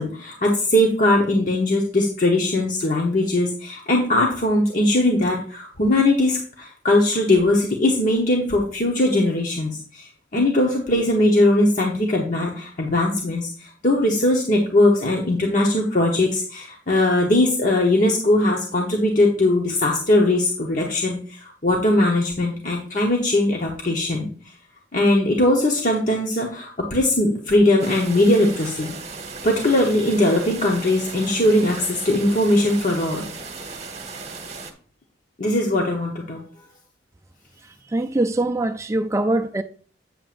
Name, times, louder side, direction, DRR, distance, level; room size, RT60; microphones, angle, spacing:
voice 1, 0.0-24.3 24.9-28.9 29.4-33.3 35.4-36.4, left 1 dB, 45° left, 1.0 m, -20 dB
sound 1, 27.8-34.7, right 4 dB, 35° right, 1.2 m, -36 dB
voice 2, 37.6-39.6, right 2 dB, 15° right, 0.3 m, -23 dB
8.7 x 7.5 x 2.5 m
head